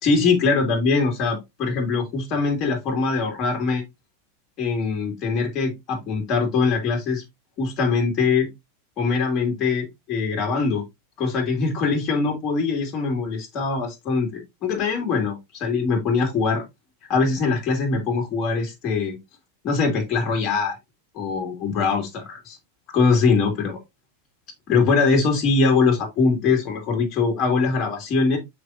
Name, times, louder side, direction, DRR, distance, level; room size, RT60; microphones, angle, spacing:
voice 1, 0.0-3.8 4.6-7.2 7.6-8.5 9.0-10.8 11.2-16.6 17.1-19.2 19.6-20.8 21.1-22.6 22.9-23.8 24.7-28.4, left 4 dB, 40° left, 2.8 m, -22 dB
6.7 x 5.3 x 2.8 m
hypercardioid pair, 95°, 0 cm